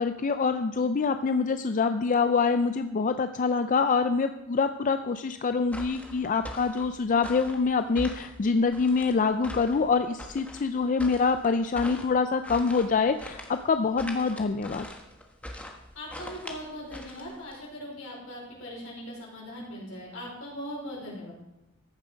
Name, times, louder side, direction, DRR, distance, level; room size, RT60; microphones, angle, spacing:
voice 1, 0.0-14.9, left 4 dB, 40° left, 9 dB, 0.4 m, -25 dB
sound 1, 5.7-17.6, left 1 dB, 5° left, 1.3 m, -43 dB
voice 2, 16.0-21.3, equal, 75° left, -3 dB, 5.1 m, -40 dB
14.5 x 7.2 x 5.1 m, 0.92 s
head